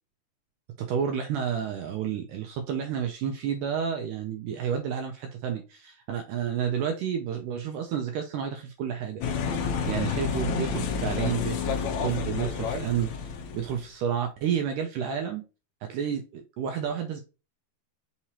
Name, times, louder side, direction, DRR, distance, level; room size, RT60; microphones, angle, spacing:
voice 1, 0.8-9.2 9.9-15.4 15.8-17.2, right 8 dB, 80° right, 4 dB, 1.9 m, -30 dB
sound 1, 9.2-13.8, left 6 dB, 75° left, 1.7 m, -30 dB
5.8 x 2.9 x 2.8 m, 0.30 s
omnidirectional pair, 4.3 m